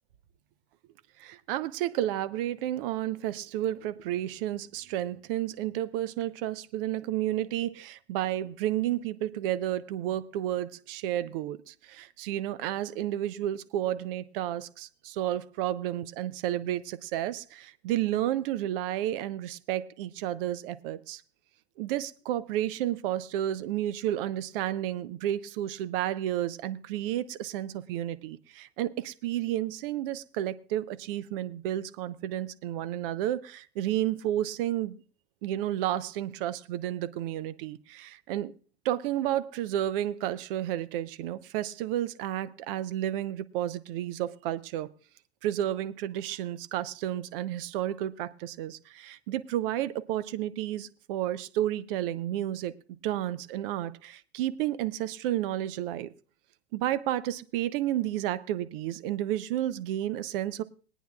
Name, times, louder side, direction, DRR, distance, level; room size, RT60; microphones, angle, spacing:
voice 1, 1.2-21.2 21.8-35.0 35.4-38.5 38.8-44.9 45.4-52.7 53.0-56.1 56.7-60.6, right 12 dB, 55° right, 0.8 m, -31 dB
22.0 x 9.2 x 2.4 m
hypercardioid pair, 85°, 32 cm